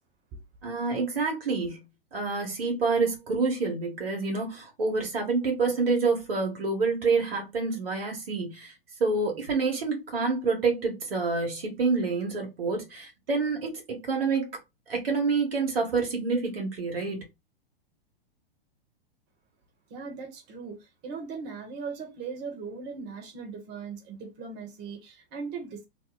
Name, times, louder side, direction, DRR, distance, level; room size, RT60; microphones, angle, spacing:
voice 1, 0.6-1.8 2.1-8.7 9.0-14.5 14.9-17.2, right 4 dB, 75° right, 1.5 m, -27 dB
voice 2, 19.9-25.8, right 5 dB, 35° right, 1.2 m, -39 dB
3.0 x 2.2 x 3.9 m
hypercardioid pair, 105°, 29 cm